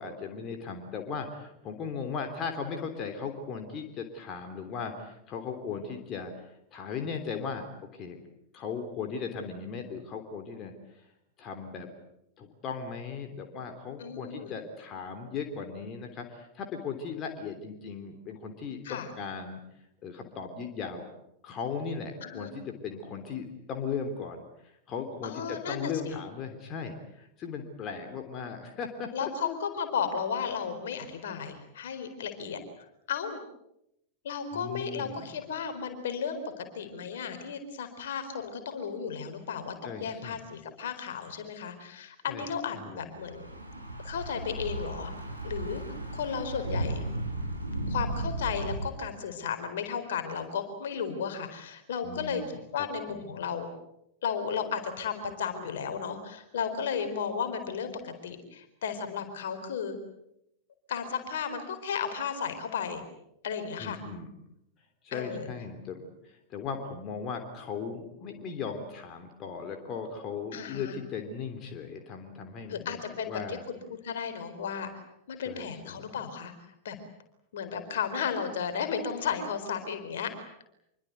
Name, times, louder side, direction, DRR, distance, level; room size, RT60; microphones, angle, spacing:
voice 1, 0.0-6.3 6.7-8.2 8.5-11.1 11.4-11.9 12.4-19.6 20.0-21.1 21.4-29.6 34.5-35.4 39.8-40.4 42.3-42.5 42.7-43.1 52.0-52.5 53.1-53.2 63.8-64.3 65.0-73.6 75.4-76.1, left 5 dB, 35° left, 5 dB, 3.4 m, -37 dB
voice 2, 14.0-14.5 18.8-19.1 22.2-22.5 25.2-26.2 29.1-33.4 34.2-43.5 44.0-45.1 45.4-45.8 46.1-47.0 47.9-52.4 52.7-53.7 54.2-59.9 60.9-63.0 63.4-64.0 65.1-65.5 70.5-71.0 72.7-74.9 75.3-76.5 76.8-77.0 77.5-80.3, left 6 dB, 60° left, 8 dB, 4.2 m, -34 dB
Thunder / Bicycle, 43.1-48.9, right 1 dB, 85° right, 4.6 m, -35 dB
26.5 x 24.0 x 8.1 m, 0.80 s
figure-of-eight pair, 90°, 0 cm